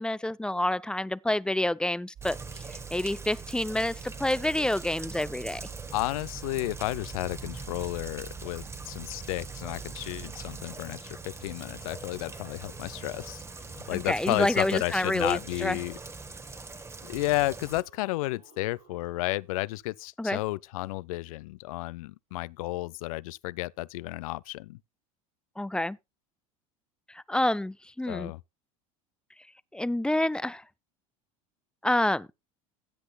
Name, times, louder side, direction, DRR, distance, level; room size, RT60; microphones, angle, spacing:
voice 1, 0.0-2.4 2.9-5.6 13.9-15.8 20.2-20.4 25.6-26.0 27.1-28.3 29.7-30.6 31.8-32.3, left 1 dB, 5° left, 0.4 m, -28 dB
Rain, 2.2-17.8, right 3 dB, 15° right, 1.1 m, -42 dB
sound 1, 2.2-10.6, right 9 dB, 40° right, 1.8 m, -46 dB
voice 2, 5.9-13.4 13.7-16.0 17.0-24.8 28.1-28.4, left 19 dB, 80° left, 0.5 m, -32 dB
sound 2, 10.7-13.4 15.9-16.0 16.7-19.8 22.3-22.4, right 5 dB, 85° right, 6.9 m, -59 dB
16.0 x 8.1 x 2.3 m
hypercardioid pair, 90°, 18 cm